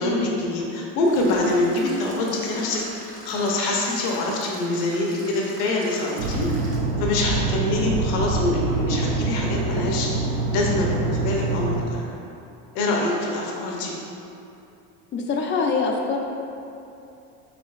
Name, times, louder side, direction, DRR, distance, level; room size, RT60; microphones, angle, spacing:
voice 1, 0.0-2.8 3.2-6.5 7.0-10.1 10.5-12.1 12.7-14.0, left 2 dB, 70° left, -1 dB, 0.8 m, -24 dB
sound 1, 1.0-6.8, right 1 dB, 20° right, 1.0 m, -43 dB
sound 2, 6.2-11.8, right 3 dB, 50° right, 0.6 m, -25 dB
voice 2, 15.1-16.2, left 4 dB, 30° left, 2 dB, 0.4 m, -24 dB
5.0 x 3.9 x 2.4 m, 2.8 s
supercardioid pair, 110°, 38 cm